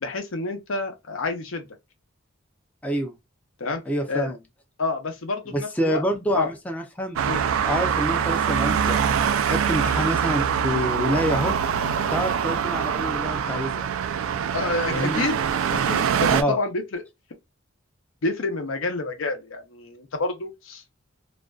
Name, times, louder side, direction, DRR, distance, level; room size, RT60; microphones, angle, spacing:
voice 1, 0.0-1.7 3.6-3.8 4.1-4.3 4.8-6.0 6.3-6.5 7.2-7.4 14.5-15.4 15.7-17.0 18.2-20.8, left 3 dB, 85° left, 0.7 m, -28 dB
voice 2, 2.8-3.1 3.9-4.4 5.5-7.2 7.6-9.0 9.4-11.6 12.1-13.9 14.9-15.2 16.3-16.6, equal, 5° left, 0.4 m, -27 dB
Traffic noise roadway noise, 7.2-16.4, right 7 dB, 85° right, 0.3 m, -24 dB
2.4 x 2.2 x 2.3 m
head